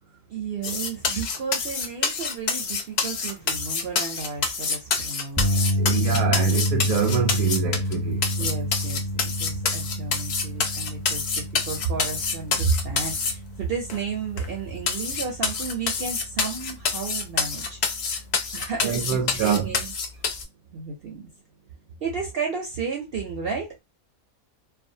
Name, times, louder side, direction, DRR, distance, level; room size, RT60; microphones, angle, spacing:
voice 1, 0.3-6.3 8.4-17.8 18.5-19.9 20.7-21.3 22.0-23.8, right 5 dB, 60° right, 0.6 m, -32 dB
sound 1, 0.6-7.9 8.2-13.3 13.9-14.0 14.4-14.5 14.9-20.4, left 5 dB, 60° left, 0.8 m, -27 dB
sound 2, 5.4-17.6 18.0-18.2 20.4-20.5, equal, 10° left, 0.7 m, -29 dB
voice 2, 5.8-8.2 18.8-19.7, right 7 dB, 80° right, 1.0 m, -26 dB
2.5 x 2.3 x 2.6 m
omnidirectional pair, 1.5 m